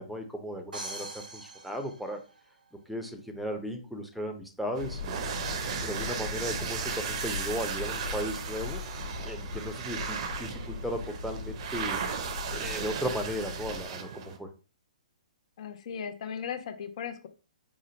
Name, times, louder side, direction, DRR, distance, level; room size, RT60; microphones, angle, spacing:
voice 1, 0.0-2.2 2.9-5.2 5.8-8.8 9.2-12.0 12.5-14.5, equal, ahead, 3 dB, 0.6 m, -36 dB
sound 1, 0.7-2.7, right 2 dB, 90° right, 1.0 m, -42 dB
sound 2, 4.7-14.4, right 6 dB, 45° right, 0.7 m, -36 dB
sound 3, 4.8-13.9, left 5 dB, 80° left, 1.1 m, -40 dB
voice 2, 15.6-17.3, left 7 dB, 50° left, 9 dB, 0.7 m, -37 dB
4.9 x 2.1 x 3.9 m, 0.34 s
hypercardioid pair, 130°, 4 cm